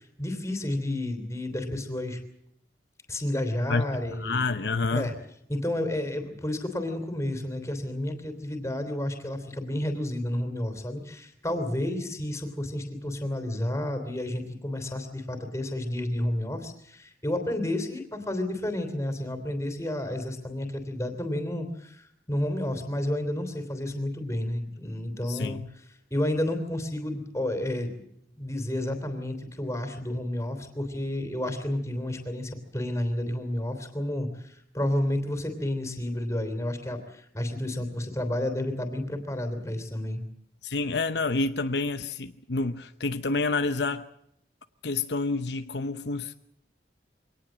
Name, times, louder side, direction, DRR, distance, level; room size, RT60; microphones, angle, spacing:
voice 1, 0.0-2.2 3.1-4.4 4.9-5.1 5.5-25.8 26.1-28.0 28.4-40.2, left 1 dB, 15° left, 6 dB, 3.3 m, -31 dB
voice 2, 4.2-5.1 25.2-25.6 40.6-44.1 44.8-46.3, left 3 dB, 70° left, 10 dB, 0.8 m, -28 dB
24.0 x 18.5 x 7.5 m, 0.74 s
head